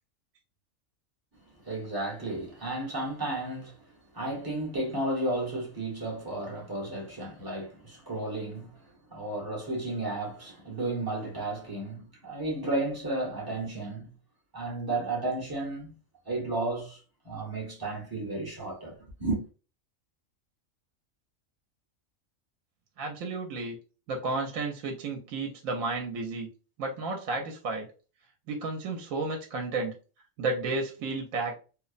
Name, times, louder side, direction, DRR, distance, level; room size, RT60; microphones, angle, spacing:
voice 1, 1.6-3.8 4.1-8.8 9.1-14.1 14.5-15.9 16.3-19.4, right 2 dB, 25° right, 0.6 m, -33 dB
voice 2, 23.0-23.8 24.1-26.5 26.8-27.9 28.5-29.9 30.4-31.5, right 3 dB, 75° right, 1.0 m, -32 dB
2.8 x 2.0 x 2.4 m
omnidirectional pair, 1.4 m